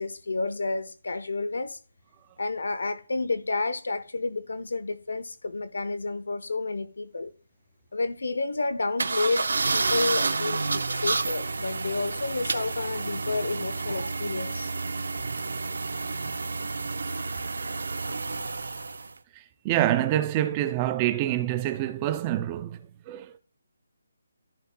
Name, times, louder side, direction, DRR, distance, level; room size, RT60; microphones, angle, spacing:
voice 1, 0.0-1.8 2.4-7.3 7.9-14.7, left 3 dB, 90° left, 0.8 m, -30 dB
sound 1, 9.0-19.1, right 3 dB, 85° right, 0.8 m, -30 dB
voice 2, 19.3-22.8 23.1-23.4, right 13 dB, 15° right, 0.4 m, -26 dB
14.0 x 5.5 x 2.2 m
hypercardioid pair, 170°, 0 cm